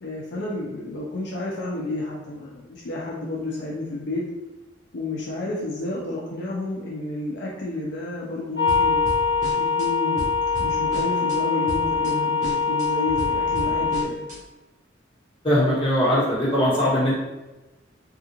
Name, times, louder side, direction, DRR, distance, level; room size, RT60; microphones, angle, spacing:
voice 1, 0.0-4.2 4.9-9.0 9.6-10.3 10.6-14.1, left 2 dB, 70° left, -4 dB, 0.5 m, -30 dB
sound 1, 8.6-14.0, left 5 dB, 90° right, 0.9 m, -23 dB
sound 2, 8.7-9.9 10.2-11.4 11.7-12.1 12.4-14.4, equal, 45° right, 1.0 m, -35 dB
voice 2, 15.4-17.1, equal, 30° left, -8 dB, 1.2 m, -20 dB
3.5 x 2.4 x 2.9 m, 1.1 s
head